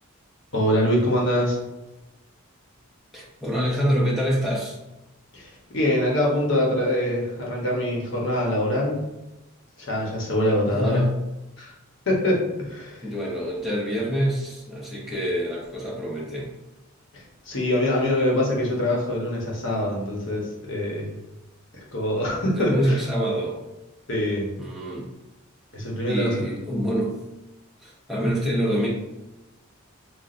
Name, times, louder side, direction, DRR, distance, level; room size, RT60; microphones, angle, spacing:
voice 1, 0.5-1.6 5.3-9.0 9.8-11.0 11.6-11.7 12.1-13.0 17.1-21.2 21.7-23.0 24.1-24.6 25.7-26.4, left 1 dB, 55° left, -2 dB, 1.1 m, -24 dB
voice 2, 3.1-4.8 10.7-11.1 13.0-16.5 22.3-23.6 24.6-25.1 26.1-27.2 27.8-28.9, equal, ahead, -6 dB, 0.9 m, -26 dB
5.7 x 2.3 x 2.5 m, 1.0 s
head